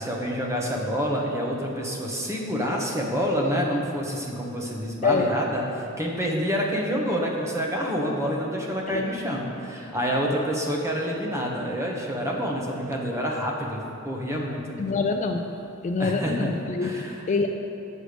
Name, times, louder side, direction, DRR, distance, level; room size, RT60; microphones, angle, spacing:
voice 1, 0.0-14.7 16.0-16.5 16.8-17.2, equal, 15° right, -1 dB, 1.0 m, -27 dB
voice 2, 14.8-15.5 15.8-16.9 17.3-17.5, left 4 dB, 35° left, 4 dB, 0.3 m, -25 dB
7.6 x 6.5 x 5.0 m, 2.8 s
head